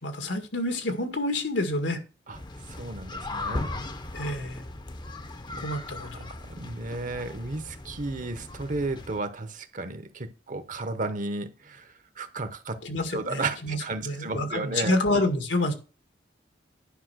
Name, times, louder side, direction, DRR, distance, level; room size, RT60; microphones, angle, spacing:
voice 1, 0.0-2.0 4.1-4.6 5.6-6.3 12.8-15.7, left 1 dB, 85° left, 2.0 m, -28 dB
sound 1, 2.3-9.2, left 2 dB, 25° left, 0.7 m, -38 dB
voice 2, 2.7-3.7 5.5-5.6 6.0-6.1 6.5-12.8 13.1-15.0, right 3 dB, 45° right, 1.0 m, -33 dB
10.0 x 5.5 x 6.3 m
head